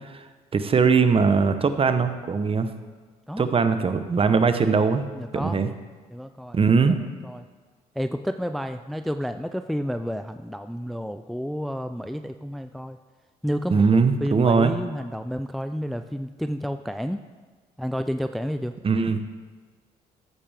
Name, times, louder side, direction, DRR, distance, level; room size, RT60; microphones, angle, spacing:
voice 1, 0.5-2.7 3.4-5.1 5.3-5.7 6.5-7.0 13.7-14.7 18.8-19.2, right 5 dB, 35° right, 9 dB, 0.9 m, -20 dB
voice 2, 5.1-5.6 6.1-6.6 6.9-7.5 8.0-13.0 13.4-17.2 17.8-18.7, equal, ahead, 9 dB, 0.4 m, -30 dB
13.5 x 8.6 x 3.5 m, 1.4 s
supercardioid pair, 70°, 16 cm